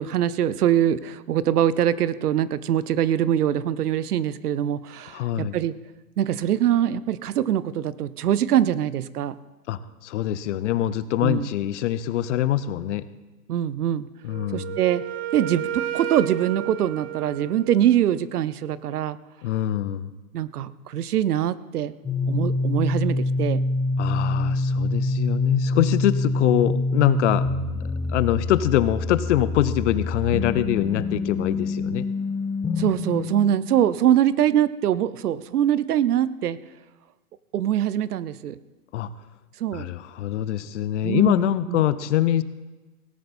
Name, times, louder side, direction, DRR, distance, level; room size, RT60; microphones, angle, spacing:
voice 1, 0.0-5.7 6.2-9.3 11.2-11.5 13.5-14.1 14.5-15.0 15.3-19.2 20.3-21.9 22.3-23.6 32.8-36.6 37.5-38.5 39.6-39.9 41.0-41.8, right 10 dB, 75° right, 17 dB, 0.8 m, -23 dB
voice 2, 5.1-5.6 9.7-13.1 14.2-14.8 19.4-20.1 24.0-27.5 28.1-32.1 38.9-39.1 39.7-42.4, left 12 dB, 50° left, 16 dB, 0.8 m, -24 dB
Wind instrument woodwind instrument, 14.3-18.2, right 11 dB, 45° right, 0.8 m, -32 dB
sound 1, 22.0-33.3, left 2 dB, 10° left, 1.2 m, -26 dB
17.5 x 10.5 x 4.3 m, 1.1 s
hypercardioid pair, 130°, 46 cm